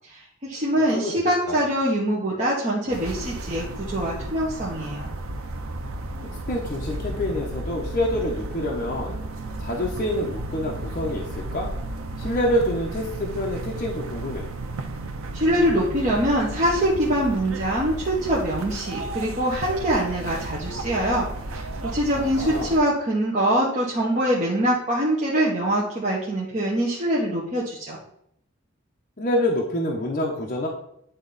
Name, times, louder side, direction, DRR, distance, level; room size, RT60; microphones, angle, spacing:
voice 1, 0.1-5.1 15.3-21.3 21.5-28.0, right 1 dB, 35° right, -6 dB, 1.2 m, -24 dB
sound 1, 2.9-22.8, right 2 dB, 90° right, 0.7 m, -33 dB
voice 2, 6.5-9.2 9.6-11.3 11.5-11.7 12.2-14.5 22.1-22.8 29.2-30.7, left 1 dB, 40° left, -2 dB, 0.9 m, -26 dB
9.2 x 3.6 x 4.0 m, 0.72 s
head